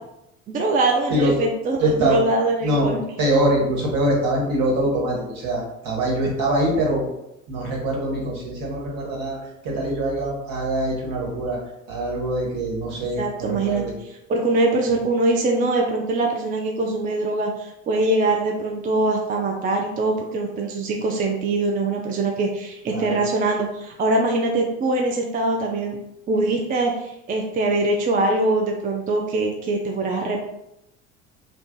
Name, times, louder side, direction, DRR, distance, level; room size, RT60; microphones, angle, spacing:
voice 1, 0.5-3.0 13.2-13.9 14.3-26.0 26.3-30.4, right 2 dB, 20° right, 1 dB, 0.4 m, -23 dB
voice 2, 1.8-2.2 2.6-2.9 3.2-7.0 7.5-9.4 9.6-11.6 11.9-13.9 22.9-23.2, right 1 dB, 55° right, -2 dB, 1.4 m, -23 dB
2.5 x 2.3 x 3.6 m, 0.85 s
hypercardioid pair, 65°, 41 cm